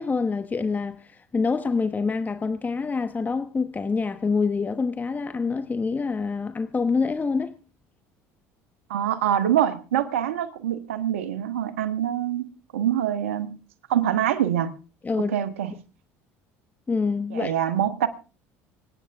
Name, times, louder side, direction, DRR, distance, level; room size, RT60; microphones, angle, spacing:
voice 1, 0.0-7.6 15.0-15.4 16.9-17.5, left 4 dB, 25° left, 1.1 m, -26 dB
voice 2, 8.9-13.6 13.9-14.7 15.2-15.7 17.3-18.1, right 10 dB, 90° right, 1.4 m, -25 dB
26.0 x 9.2 x 3.6 m
hypercardioid pair, 80°, 7 cm